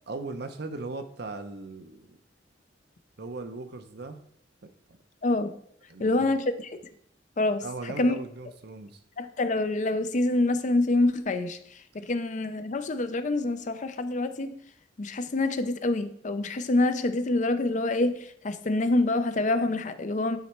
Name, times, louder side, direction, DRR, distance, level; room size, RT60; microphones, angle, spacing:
voice 1, 0.1-2.2 3.2-4.2 4.6-5.0 5.9-6.3 7.6-9.0, right 3 dB, 60° right, 0.7 m, -38 dB
voice 2, 5.2-5.5 6.0-6.8 7.4-8.2 9.2-11.6 11.9-14.6 15.0-20.4, left 2 dB, 40° left, 0.5 m, -26 dB
9.5 x 4.2 x 4.4 m
head